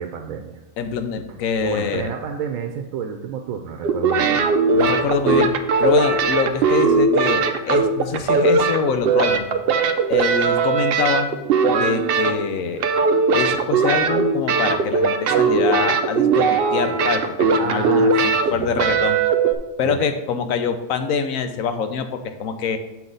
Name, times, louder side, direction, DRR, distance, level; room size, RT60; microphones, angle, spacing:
voice 1, 0.0-0.6 1.3-1.4 1.6-4.7 17.6-18.2 18.5-18.9 19.8-20.1, right 7 dB, 90° right, 4 dB, 1.0 m, -30 dB
voice 2, 0.8-2.1 4.7-5.5 5.8-9.5 10.1-11.3 11.7-12.8 13.3-19.2 19.8-22.8, left 6 dB, 90° left, 8 dB, 1.1 m, -25 dB
sound 1, 3.8-12.5 12.8-19.5, right 4 dB, 60° right, 0.7 m, -19 dB
7.2 x 5.8 x 3.9 m, 1.1 s
omnidirectional pair, 1.4 m